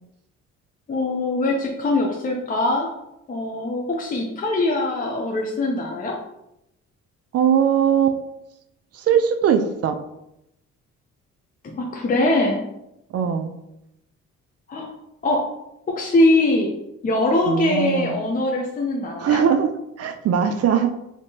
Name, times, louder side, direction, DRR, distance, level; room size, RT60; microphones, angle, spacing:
voice 1, 0.9-2.9 3.3-6.1 11.6-12.6 14.7-14.9 15.2-15.4 15.9-16.7 17.0-19.4, left 2 dB, 30° left, 0 dB, 0.5 m, -22 dB
voice 2, 7.3-8.2 8.9-10.0 13.1-13.5 17.5-18.2 19.2-19.7 20.0-20.9, right 8 dB, 55° right, 7 dB, 0.4 m, -20 dB
3.6 x 2.8 x 2.7 m, 0.84 s
cardioid pair, 90°, 30 cm